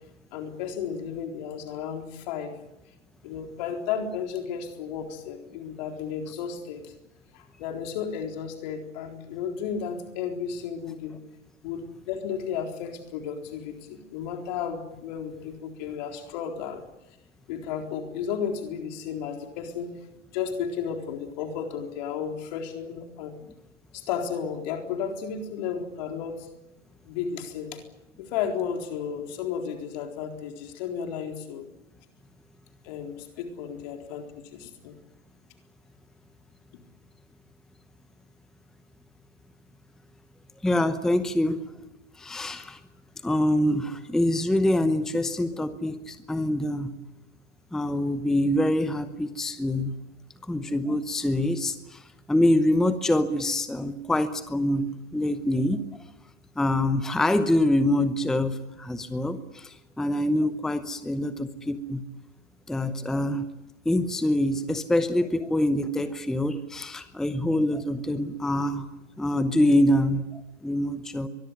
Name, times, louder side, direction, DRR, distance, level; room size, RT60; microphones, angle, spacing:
voice 1, 0.3-2.5 3.2-6.9 7.3-11.2 11.6-16.8 17.5-19.9 20.3-23.4 23.9-26.5 27.1-27.8 28.2-31.7 32.8-34.3 34.5-35.0, left 7 dB, 35° left, 4 dB, 4.1 m, -33 dB
voice 2, 40.6-41.6 42.2-42.8 43.2-46.9 47.7-49.9 50.5-52.0 52.3-55.8 56.6-62.0 62.7-63.4 63.8-68.9 69.2-71.3, left 1 dB, ahead, 12 dB, 0.8 m, -25 dB
23.5 x 21.5 x 9.8 m, 0.93 s
figure-of-eight pair, 125°, 37 cm